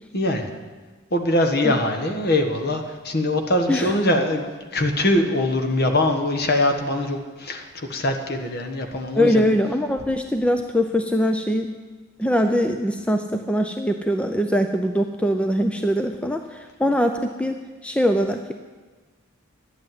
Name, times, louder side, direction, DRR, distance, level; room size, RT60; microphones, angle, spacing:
voice 1, 0.1-0.5 1.1-9.5, left 1 dB, 50° left, 5 dB, 1.4 m, -22 dB
voice 2, 9.1-11.7 12.2-17.6 17.8-18.5, equal, 5° left, 5 dB, 0.5 m, -22 dB
11.5 x 8.7 x 9.4 m, 1.3 s
head